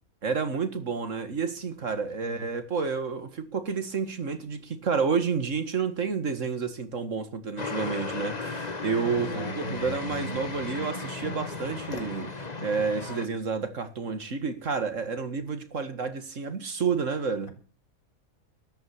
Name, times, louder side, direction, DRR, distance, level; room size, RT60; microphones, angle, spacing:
voice 1, 0.2-17.5, right 5 dB, 60° right, 2.2 m, -30 dB
voice 2, 1.9-2.5 9.1-10.0, equal, 70° left, 4.2 m, -38 dB
sound 1, 7.6-13.3, left 3 dB, 30° left, 1.6 m, -35 dB
13.0 x 11.5 x 7.3 m
omnidirectional pair, 1.5 m